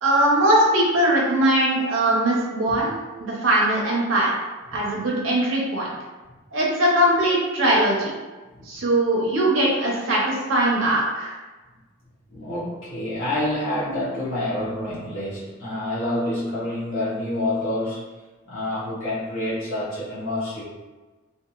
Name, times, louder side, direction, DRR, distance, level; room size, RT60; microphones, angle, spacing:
voice 1, 0.0-2.9 3.2-4.3 4.7-5.9 6.5-8.1 8.6-11.4, right 1 dB, 90° right, -3 dB, 0.7 m, -20 dB
voice 2, 12.3-18.1 18.5-20.6, left 1 dB, 90° left, -9 dB, 0.9 m, -28 dB
2.8 x 2.5 x 2.3 m, 1.2 s
head